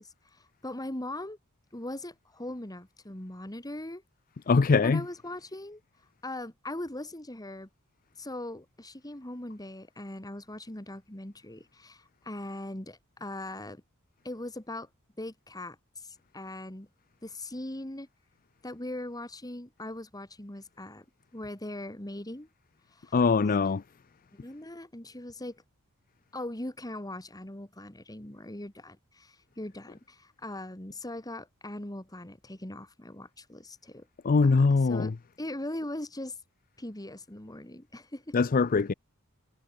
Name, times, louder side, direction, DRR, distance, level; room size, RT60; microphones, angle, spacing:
voice 1, 0.0-1.4 1.7-4.0 4.8-5.8 6.2-7.7 8.2-13.8 14.2-14.9 15.2-16.9 17.2-18.1 18.6-21.0 21.3-22.5 22.9-23.2 23.4-23.6 24.3-25.6 26.3-34.1 34.4-34.6 34.9-35.1 35.4-36.4 36.8-38.4, left 1 dB, 15° left, 2.4 m, -40 dB
voice 2, 4.5-5.0 23.1-23.8 34.2-35.1 38.3-38.9, left 4 dB, 40° left, 0.5 m, -22 dB
head